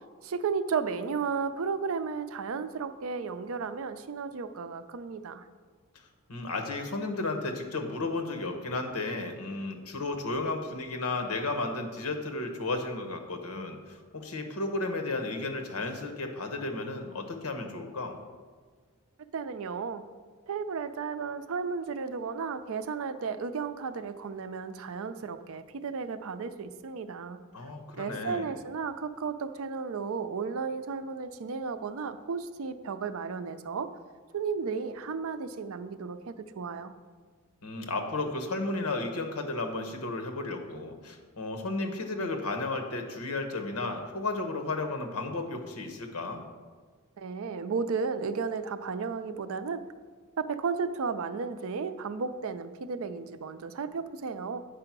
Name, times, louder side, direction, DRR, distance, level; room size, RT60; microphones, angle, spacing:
voice 1, 0.2-5.4 19.3-20.0 20.5-27.4 28.0-33.9 34.3-36.9 47.2-49.8 50.4-54.6, right 5 dB, 65° right, 11 dB, 0.5 m, -34 dB
voice 2, 6.3-18.2 27.5-28.5 37.6-46.4, left 2 dB, 75° left, 5 dB, 1.1 m, -33 dB
8.8 x 4.9 x 6.0 m, 1.5 s
head